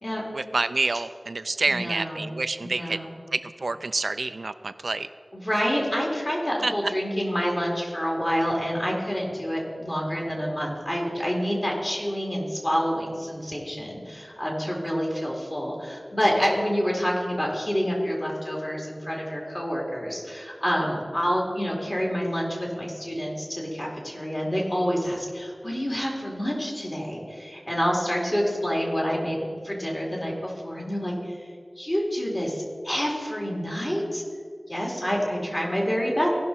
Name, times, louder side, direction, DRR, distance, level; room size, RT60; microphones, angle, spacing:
voice 1, 0.3-3.0 3.3-5.1 6.6-6.7, right 3 dB, 85° right, 12 dB, 0.3 m, -28 dB
voice 2, 1.7-2.3 2.6-3.2 5.3-31.4 31.8-34.2 34.7-36.3, equal, 35° left, -2 dB, 2.8 m, -28 dB
17.0 x 5.9 x 4.1 m, 2.1 s
wide cardioid pair, 60°, 0 cm